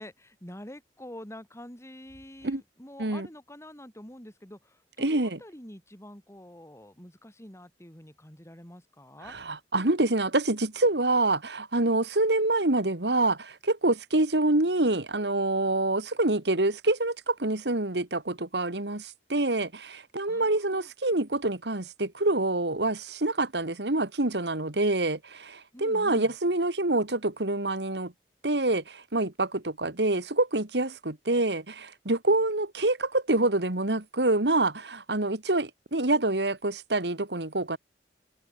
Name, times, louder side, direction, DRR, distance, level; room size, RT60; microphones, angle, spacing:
voice 1, 0.0-9.4 20.3-20.9 25.7-26.3, left 1 dB, 15° left, 6.8 m, -46 dB
voice 2, 5.0-5.4 9.3-28.1 28.4-37.8, right 2 dB, 70° right, 2.3 m, -26 dB
head